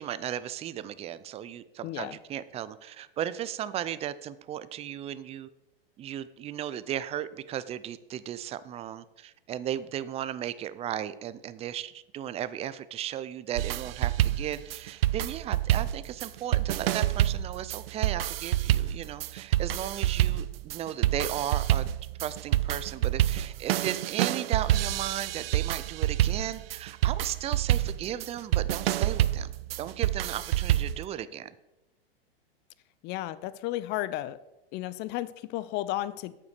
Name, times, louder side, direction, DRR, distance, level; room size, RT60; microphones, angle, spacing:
voice 1, 0.0-5.5 6.0-21.9 22.2-31.5, right 10 dB, 20° right, 16 dB, 0.4 m, -35 dB
voice 2, 1.8-2.2 33.0-34.4 34.7-36.4, left 15 dB, 35° left, 16 dB, 0.6 m, -33 dB
sound 1, 13.6-31.0, right 13 dB, 75° right, 0.5 m, -27 dB
8.9 x 5.9 x 6.6 m, 0.97 s
hypercardioid pair, 115°, 30 cm